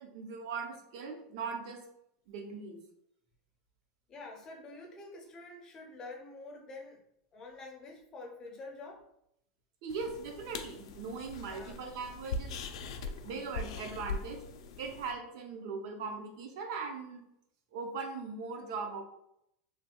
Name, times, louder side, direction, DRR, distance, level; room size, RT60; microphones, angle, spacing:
voice 1, 0.0-1.8 2.3-2.8 9.8-12.5 13.2-14.4 14.8-17.2 17.7-19.0, right 4 dB, 60° right, 4 dB, 0.6 m, -39 dB
voice 2, 4.1-7.0 7.3-9.1 11.5-11.8, left 2 dB, 20° left, 0 dB, 0.5 m, -47 dB
sound 1, 9.9-15.1, left 3 dB, 85° left, 0.3 m, -41 dB
3.2 x 2.3 x 2.8 m, 0.77 s
supercardioid pair, 165°, 3 cm